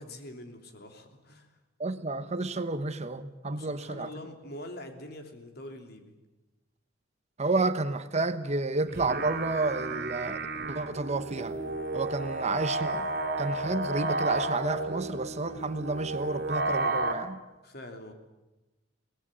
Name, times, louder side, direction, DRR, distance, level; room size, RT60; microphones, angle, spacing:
voice 1, 0.0-1.6 3.5-6.1 17.6-18.1, left 1 dB, 55° left, 3.2 m, -44 dB
voice 2, 1.8-4.1 7.4-11.6 11.9-13.1 13.4-17.4, right 3 dB, 35° right, 1.1 m, -31 dB
sound 1, 8.9-17.1, right 2 dB, 55° right, 3.2 m, -32 dB
23.0 x 19.0 x 9.8 m
head